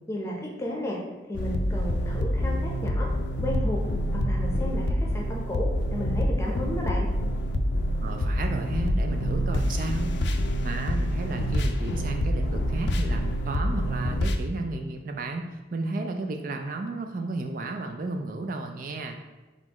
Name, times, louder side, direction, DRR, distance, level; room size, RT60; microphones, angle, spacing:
voice 1, 0.1-1.0 1.3-3.1 3.4-3.8 4.1-7.1, left 1 dB, 15° left, -2 dB, 0.7 m, -33 dB
sound 1, 1.3-14.4, equal, 70° left, 0.4 m, -26 dB
voice 2, 8.0-10.1 10.6-19.2, right 2 dB, 45° right, 4 dB, 0.3 m, -33 dB
4.2 x 4.1 x 2.9 m, 1.2 s
head